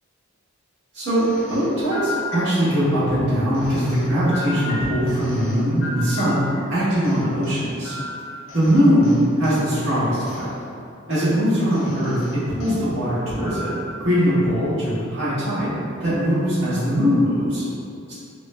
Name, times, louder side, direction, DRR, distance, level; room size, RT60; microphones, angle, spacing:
voice 1, 0.9-6.4 6.7-8.0 8.5-10.5 11.1-13.7 14.0-15.7 16.0-17.6 18.1-18.2, equal, 80° right, -13 dB, 1.5 m, -21 dB
sound 1, 1.1-2.9 3.5-6.7 7.0-9.6 10.3-10.5 11.1-11.3 11.7-12.8 13.4-14.0, left 2 dB, 70° left, 0.5 m, -35 dB
3.2 x 2.9 x 2.2 m, 2.6 s
head